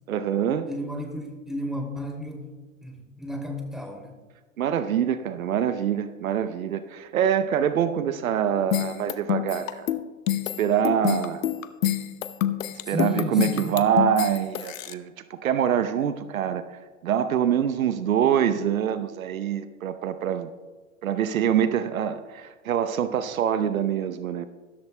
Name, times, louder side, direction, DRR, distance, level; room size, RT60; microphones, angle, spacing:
voice 1, 0.1-0.7 4.6-9.9 10.6-11.4 12.9-16.6 17.0-20.5 21.0-24.5, right 9 dB, 80° right, 12 dB, 0.8 m, -25 dB
voice 2, 0.7-2.5 2.8-4.2 12.8-13.8, left 1 dB, ahead, 0 dB, 2.7 m, -32 dB
sound 1, 8.7-14.9, left 12 dB, 75° left, 0.8 m, -27 dB
14.5 x 13.5 x 2.2 m, 1.3 s
hypercardioid pair, 110°, 41 cm